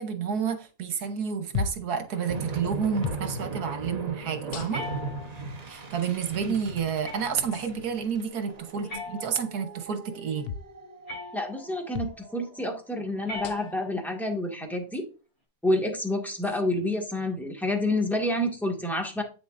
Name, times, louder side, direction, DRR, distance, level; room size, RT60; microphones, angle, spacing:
voice 1, 0.0-4.9 5.7-10.5, right 7 dB, 85° right, 1.6 m, -30 dB
sound 1, 1.5-1.9 3.0-3.3 4.5-5.0 6.0-6.1 7.5-7.7 10.4-10.7 11.9-12.2 13.4-13.8 14.9-15.0 16.4-16.6, left 7 dB, 70° left, 0.5 m, -34 dB
sound 2, 2.1-12.7, right 3 dB, 30° right, 1.0 m, -39 dB
sound 3, 4.7-5.6 7.0-7.6 8.9-9.8 11.1-11.8 13.2-14.1, left 2 dB, 35° left, 4.8 m, -40 dB
voice 2, 11.3-15.0 15.6-19.2, left 1 dB, ahead, 1.8 m, -28 dB
8.8 x 6.8 x 2.6 m
omnidirectional pair, 1.6 m